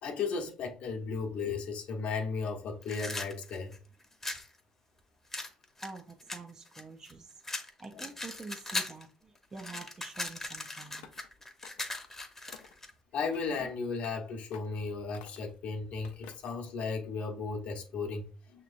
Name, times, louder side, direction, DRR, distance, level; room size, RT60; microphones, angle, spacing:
voice 1, 0.0-3.7 7.9-8.0 13.1-18.6, left 4 dB, 65° left, 0.9 m, -35 dB
sound 1, 2.8-4.5 5.3-7.1 7.4-9.0 9.4-12.9, left 2 dB, 15° left, 0.8 m, -39 dB
voice 2, 5.8-11.1 13.6-13.7, right 3 dB, 25° right, 0.5 m, -47 dB
sound 2, 10.9-11.3 11.6-12.1 12.5-12.8 13.3-13.7 14.0-14.2 14.5-14.8 15.1-15.6 16.0-16.6, left 8 dB, 85° left, 0.6 m, -53 dB
5.9 x 2.9 x 2.5 m
supercardioid pair, 90°, 2 cm